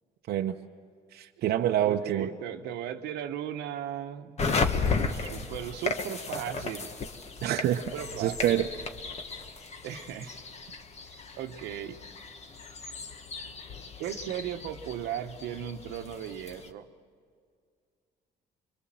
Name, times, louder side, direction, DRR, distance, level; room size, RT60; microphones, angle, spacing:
voice 1, 1.1-2.3 7.4-7.8 8.2-8.7, right 11 dB, 70° right, 3 dB, 0.8 m, -26 dB
voice 2, 1.8-4.8 5.1-6.9 7.9-8.6 9.8-10.4 11.1-12.0 14.0-16.9, right 10 dB, 85° right, 7 dB, 1.1 m, -37 dB
sound 1, 4.4-16.7, left 4 dB, 40° left, 1.5 m, -35 dB
25.0 x 23.0 x 7.6 m, 2.2 s
cardioid pair, 110°, 17 cm